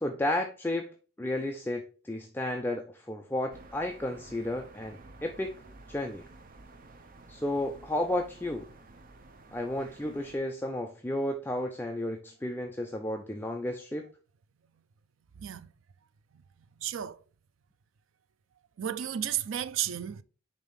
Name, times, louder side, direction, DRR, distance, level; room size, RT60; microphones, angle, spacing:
voice 1, 0.0-5.5 5.9-6.2 7.3-8.7 9.5-14.1, left 1 dB, 10° left, 0.5 m, -33 dB
sound 1, 3.5-10.4, right 2 dB, 45° right, 0.7 m, -52 dB
voice 2, 15.4-15.7 16.3-16.4 16.8-17.2 18.8-20.2, right 10 dB, 70° right, 0.4 m, -33 dB
5.2 x 3.6 x 5.5 m
head